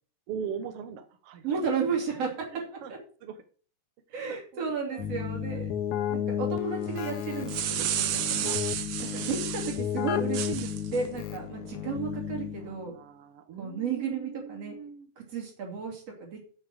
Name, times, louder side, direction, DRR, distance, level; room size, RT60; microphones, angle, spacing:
voice 1, 0.3-1.8 2.5-2.9 3.2-3.4 4.1-5.6 12.6-15.1, right 7 dB, 70° right, 8 dB, 1.5 m, -41 dB
voice 2, 1.4-2.5 4.1-5.7 6.1-8.6 9.1-12.9 13.6-14.8 15.2-16.4, right 5 dB, 50° right, 0 dB, 4.0 m, -33 dB
Keyboard (musical), 5.0-12.9, left 9 dB, 70° left, 2.1 m, -33 dB
sound 1, 7.2-9.8 10.3-11.0, right 11 dB, 85° right, 1.3 m, -31 dB
7.8 x 7.8 x 6.3 m, 0.42 s
omnidirectional pair, 3.8 m